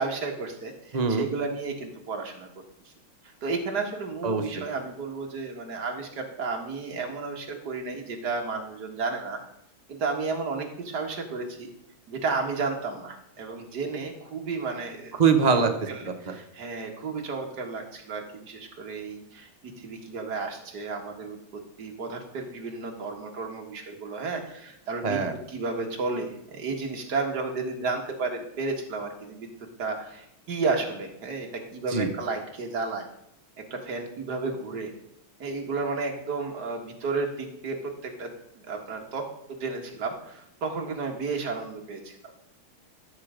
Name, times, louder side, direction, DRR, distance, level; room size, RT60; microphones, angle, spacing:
voice 1, 0.0-2.5 3.4-9.4 9.9-11.7 12.1-15.1 15.5-21.4 21.8-29.5 29.8-33.1 33.7-34.9 35.4-38.3 38.6-39.2 39.5-42.3, right 4 dB, 50° right, 2 dB, 2.1 m, -32 dB
voice 2, 0.9-1.3 4.2-4.6 15.1-15.7 16.3-16.4 25.0-25.3 31.9-32.1, right 5 dB, 85° right, 5 dB, 0.3 m, -23 dB
13.5 x 7.3 x 5.1 m, 0.79 s
omnidirectional pair, 2.3 m